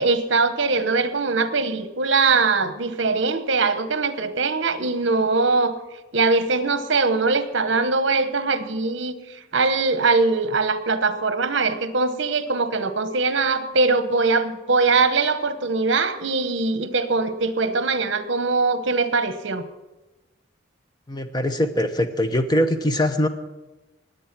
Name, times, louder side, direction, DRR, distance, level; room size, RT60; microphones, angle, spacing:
voice 1, 0.0-5.8 6.1-9.2 9.5-19.7, right 3 dB, 65° right, 11 dB, 1.0 m, -21 dB
voice 2, 21.1-23.3, left 1 dB, 20° left, 8 dB, 0.9 m, -22 dB
20.0 x 8.1 x 6.0 m, 1.1 s
head